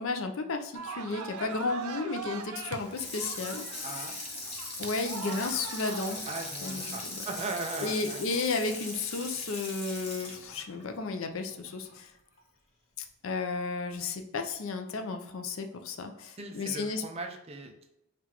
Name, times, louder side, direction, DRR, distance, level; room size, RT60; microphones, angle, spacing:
voice 1, 0.0-4.1 4.8-6.2 6.6-7.2 7.8-12.1 13.2-17.0, left 3 dB, 65° left, 6 dB, 0.5 m, -33 dB
sound 1, 0.7-9.4, right 6 dB, 85° right, 0.5 m, -43 dB
Water tap faucet / Sink (filling or washing), 2.8-12.0 12.4-12.5, left 2 dB, 30° left, 0.9 m, -40 dB
voice 2, 3.8-4.2 6.3-8.2 16.4-17.9, right 3 dB, 30° right, 4 dB, 0.4 m, -38 dB
5.6 x 2.4 x 2.9 m, 0.85 s
head